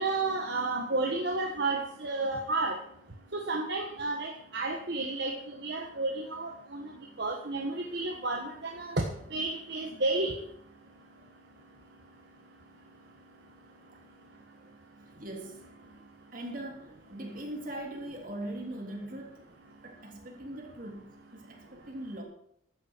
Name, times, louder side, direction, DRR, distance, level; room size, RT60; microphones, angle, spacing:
voice 1, 0.0-2.8 3.3-6.9 7.2-9.0 9.3-10.3, right 2 dB, 65° right, 1.5 m, -31 dB
voice 2, 15.2-15.6 16.3-19.3 19.8-21.0 21.3-22.2, right 1 dB, 50° right, 3.4 m, -40 dB
15.5 x 12.5 x 4.7 m
head